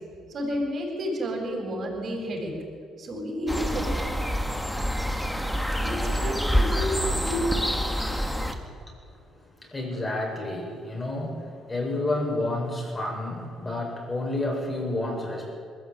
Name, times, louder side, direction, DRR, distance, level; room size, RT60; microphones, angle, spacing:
voice 1, 0.3-2.5 3.0-3.9 5.8-7.6, equal, 50° right, 0 dB, 7.8 m, -30 dB
sound 1, 3.5-8.5, equal, 5° left, 2.4 m, -27 dB
voice 2, 8.1-15.5, left 2 dB, 25° left, 0 dB, 7.5 m, -31 dB
21.0 x 15.0 x 9.5 m, 2.2 s
hypercardioid pair, 60°, 0 cm